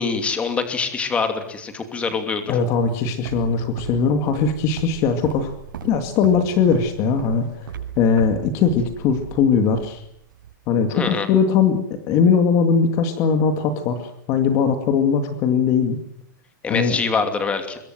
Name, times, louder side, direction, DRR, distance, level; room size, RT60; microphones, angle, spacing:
voice 1, 0.0-2.4 10.9-11.3 16.6-17.8, left 5 dB, 10° left, 7 dB, 2.7 m, -24 dB
voice 2, 2.5-5.5 5.8-7.7 8.0-10.0 10.7-16.0 16.7-17.0, left 6 dB, 30° left, 7 dB, 2.1 m, -20 dB
Walk footsteps, 2.6-10.5, right 7 dB, 85° right, 7.0 m, -37 dB
26.0 x 22.5 x 7.8 m, 0.73 s
supercardioid pair, 170°, 11 cm